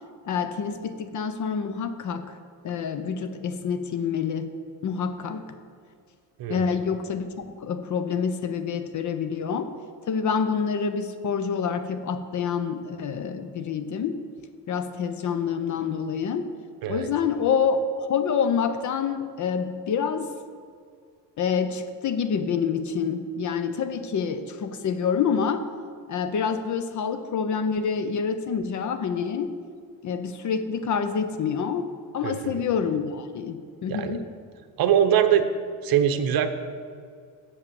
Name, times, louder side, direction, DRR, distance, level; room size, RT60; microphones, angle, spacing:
voice 1, 0.2-2.4 2.6-4.5 4.8-5.5 6.5-7.3 7.6-9.7 10.1-14.2 14.7-16.5 16.9-20.3 21.4-25.7 26.1-29.5 30.0-34.2, left 6 dB, 45° left, 10 dB, 0.6 m, -27 dB
voice 2, 32.2-32.6 33.9-34.2 34.8-35.5 35.8-36.5, right 9 dB, 55° right, 9 dB, 0.7 m, -22 dB
6.8 x 5.5 x 7.0 m, 2.1 s
cardioid pair, 95°, 42 cm